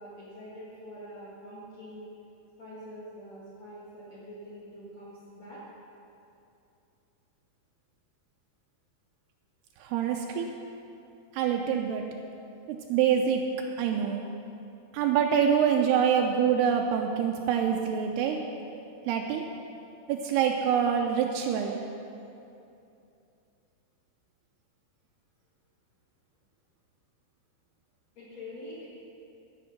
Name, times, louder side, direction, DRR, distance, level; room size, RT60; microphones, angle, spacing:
voice 1, 0.0-2.1 2.6-5.6 28.2-28.9, equal, 45° left, -10 dB, 2.8 m, -45 dB
voice 2, 9.8-10.5 11.3-12.0 12.7-13.4 13.8-14.2 14.9-18.4 19.1-19.4 20.1-21.8, right 8 dB, 80° right, 2 dB, 2.6 m, -25 dB
15.5 x 7.1 x 5.8 m, 2.7 s
omnidirectional pair, 4.7 m